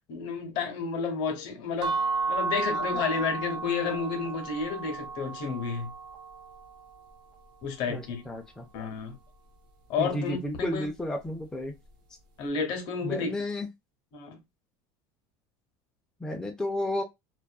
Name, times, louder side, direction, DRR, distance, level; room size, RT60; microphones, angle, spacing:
voice 1, 0.1-2.0 2.3-5.9 7.6-8.2 8.7-9.2 9.9-10.9 12.4-13.3 14.1-14.4, left 5 dB, 60° left, 0.8 m, -31 dB
sound 1, 1.8-7.6, right 4 dB, 50° right, 0.8 m, -33 dB
voice 2, 7.9-8.7 10.0-11.7 13.0-13.7 16.2-17.0, left 1 dB, 5° left, 0.4 m, -32 dB
2.5 x 2.3 x 2.3 m
cardioid pair, 135°, 9 cm